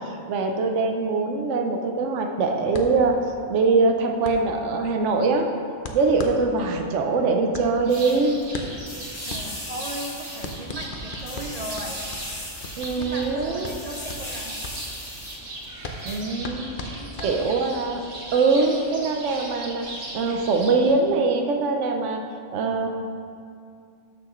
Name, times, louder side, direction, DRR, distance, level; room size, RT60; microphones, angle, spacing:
voice 1, 0.0-3.2 3.5-5.5 5.9-8.3 12.8-13.7 16.0-18.0 18.3-19.9 20.1-22.2 22.5-22.9, right 3 dB, 75° right, 3 dB, 1.0 m, -23 dB
sound 1, 2.7-17.8, left 2 dB, 50° left, 0.8 m, -39 dB
sound 2, 7.8-20.9, right 2 dB, 90° right, 1.5 m, -39 dB
sound 3, 7.9-8.5 8.8-10.9 11.2-13.3 13.6-15.7 16.0-16.2, left 1 dB, 65° left, 2.0 m, -37 dB
voice 2, 9.2-12.0 12.9-14.6 16.9-17.6 18.2-18.6, right 1 dB, 45° right, 0 dB, 0.5 m, -37 dB
13.0 x 6.1 x 3.1 m, 2.4 s
omnidirectional pair, 1.3 m